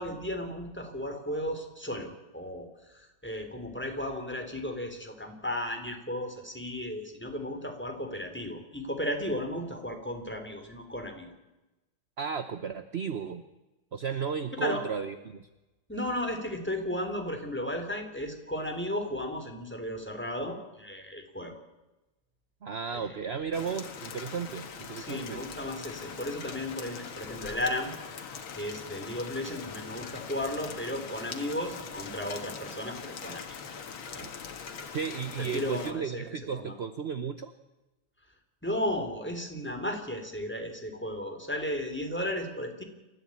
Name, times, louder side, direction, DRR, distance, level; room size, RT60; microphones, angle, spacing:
voice 1, 0.0-11.3 14.6-14.8 15.9-21.6 22.9-23.1 24.9-27.9 28.5-33.6 34.1-34.3 35.4-36.7 38.6-42.8, left 1 dB, 5° left, 4 dB, 3.6 m, -35 dB
voice 2, 12.2-13.4 13.9-15.4 22.6-25.4 34.9-37.5, right 6 dB, 45° right, 10 dB, 0.8 m, -34 dB
Rain, 23.5-35.9, left 6 dB, 80° left, 2.4 m, -42 dB
29.0 x 14.0 x 8.7 m, 1.0 s
omnidirectional pair, 2.2 m